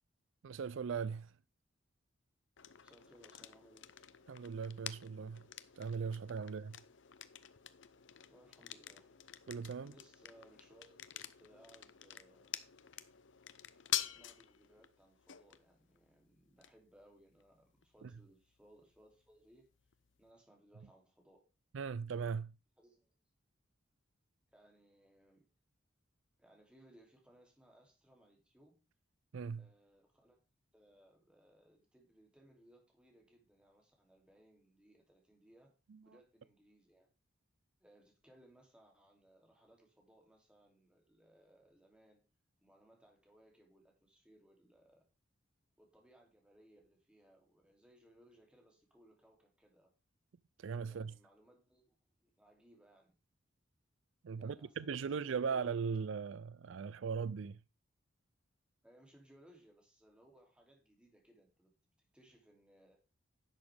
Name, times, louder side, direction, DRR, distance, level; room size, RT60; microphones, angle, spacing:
voice 1, 0.4-1.3 4.3-5.4 5.8-6.8 9.5-9.9 21.7-22.5 29.3-29.6 50.6-51.1 54.2-57.6, right 6 dB, 75° right, 0.4 m, -39 dB
sound 1, 2.6-20.3, left 13 dB, 65° left, 0.6 m, -48 dB
voice 2, 2.8-3.9 6.4-6.8 8.3-9.1 9.9-12.5 13.6-19.7 20.2-21.4 22.8-23.1 24.5-25.5 26.4-28.8 29.6-30.4 30.7-35.7 36.0-37.1 37.8-42.2 42.6-45.1 45.8-49.9 50.8-52.0 52.2-53.1 54.4-55.6 58.8-61.7 62.1-63.0, right 1 dB, 5° right, 2.8 m, -65 dB
11.0 x 7.3 x 3.4 m
head